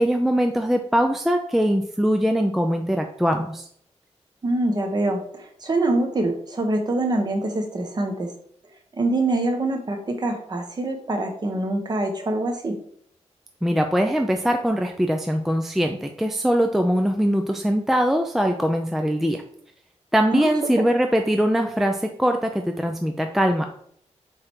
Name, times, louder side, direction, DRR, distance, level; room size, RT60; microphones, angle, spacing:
voice 1, 0.0-3.6 13.6-19.4 20.1-23.7, equal, ahead, 4 dB, 0.4 m, -22 dB
voice 2, 4.4-8.3 9.0-12.8 20.3-20.8, right 2 dB, 35° right, 4 dB, 1.0 m, -25 dB
7.4 x 3.3 x 4.5 m, 0.65 s
wide cardioid pair, 175°, 12 cm